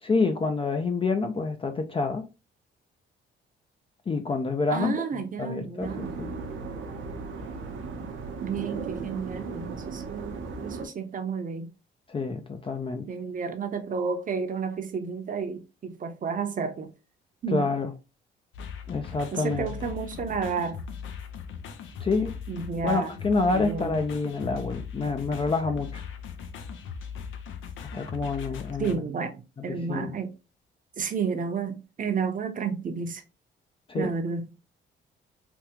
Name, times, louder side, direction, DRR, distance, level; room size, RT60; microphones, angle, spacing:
voice 1, 0.0-2.3 4.1-5.0 5.4-6.3 9.1-9.2 12.1-13.1 17.5-17.9 18.9-19.7 22.0-22.4 22.8-26.0 27.9-29.0 29.7-30.1 33.9-34.1, left 4 dB, 25° left, 0.5 m, -28 dB
voice 2, 4.7-6.1 8.4-11.7 13.1-16.9 17.4-17.7 19.3-20.8 22.5-23.2 23.5-24.0 28.8-30.3 31.0-33.2 33.9-34.5, right 5 dB, 45° right, 0.7 m, -31 dB
sound 1, 5.8-10.9, right 4 dB, 75° right, 0.8 m, -36 dB
sound 2, 18.5-29.0, left 6 dB, 75° left, 0.6 m, -39 dB
3.5 x 2.3 x 2.9 m
cardioid pair, 90°, 20 cm